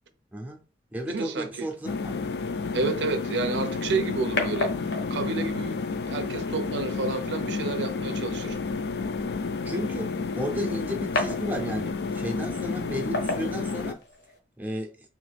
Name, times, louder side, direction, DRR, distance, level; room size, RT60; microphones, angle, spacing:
voice 1, 0.3-0.6 0.9-2.5 2.8-2.9 9.6-14.0 14.6-15.0, equal, 10° right, 0.5 m, -34 dB
voice 2, 1.1-1.7 2.7-8.6, right 3 dB, 85° right, 0.5 m, -30 dB
sound 1, 1.8-13.9, left 4 dB, 65° left, 0.3 m, -31 dB
sound 2, 3.4-14.4, left 2 dB, 80° left, 0.9 m, -37 dB
3.1 x 2.4 x 3.3 m
head